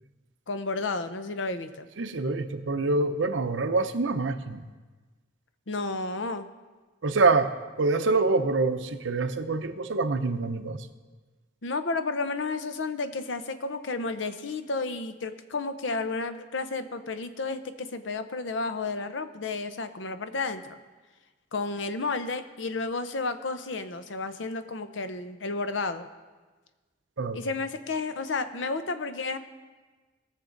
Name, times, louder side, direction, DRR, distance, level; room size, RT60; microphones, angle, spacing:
voice 1, 0.5-1.9 5.7-6.5 11.6-20.6 21.5-26.1 27.3-29.4, left 3 dB, 80° left, 10 dB, 0.8 m, -32 dB
voice 2, 2.0-4.6 7.0-7.5 7.8-10.9 27.2-27.4, right 3 dB, 85° right, 9 dB, 0.7 m, -26 dB
19.5 x 6.7 x 3.9 m, 1.3 s
head